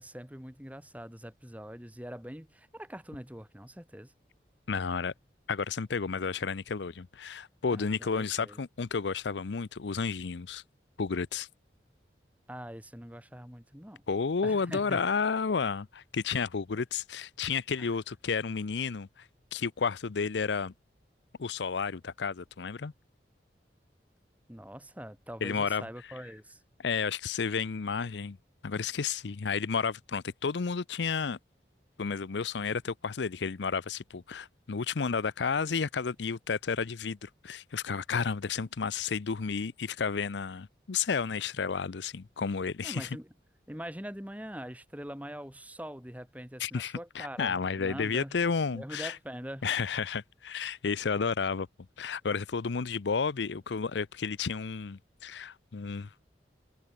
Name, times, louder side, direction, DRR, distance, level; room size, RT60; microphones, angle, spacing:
voice 1, 0.0-4.1 7.7-8.6 12.5-14.0 14.4-15.1 17.8-17.9 24.5-26.6 42.8-43.3 43.7-48.4 48.7-49.7, equal, 10° right, 3.2 m, -43 dB
voice 2, 4.7-5.1 5.5-10.6 11.0-11.5 14.1-20.7 21.4-22.9 25.4-25.8 26.8-28.4 28.6-31.4 32.0-43.1 46.6-49.2 49.6-51.7 52.0-56.1, left 5 dB, 80° left, 0.6 m, -32 dB
head